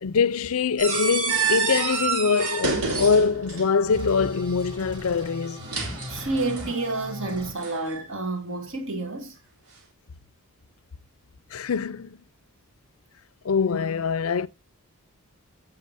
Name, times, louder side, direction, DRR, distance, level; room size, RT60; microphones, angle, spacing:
voice 1, 0.0-5.6 11.5-12.2 13.4-14.5, left 5 dB, 75° left, 0.5 m, -23 dB
sound 1, 0.8-3.8 5.4-6.7 7.6-8.0, right 5 dB, 90° right, 3.6 m, -28 dB
sound 2, 3.9-7.5, left 1 dB, 20° right, 2.3 m, -39 dB
voice 2, 6.1-9.4, right 2 dB, 60° right, 2.3 m, -29 dB
15.5 x 6.0 x 2.6 m
head